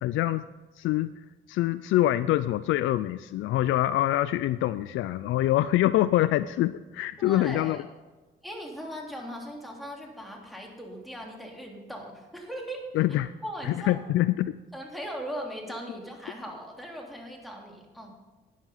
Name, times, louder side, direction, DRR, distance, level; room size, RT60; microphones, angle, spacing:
voice 1, 0.0-0.4 0.8-1.1 1.5-7.8 12.9-13.3 13.6-14.5, left 14 dB, 80° left, 13 dB, 0.4 m, -25 dB
voice 2, 7.2-7.8 8.4-12.8 13.4-14.0 14.7-18.1, equal, ahead, 0 dB, 3.3 m, -39 dB
12.5 x 9.3 x 5.6 m, 1.2 s
cardioid pair, 90°, 20 cm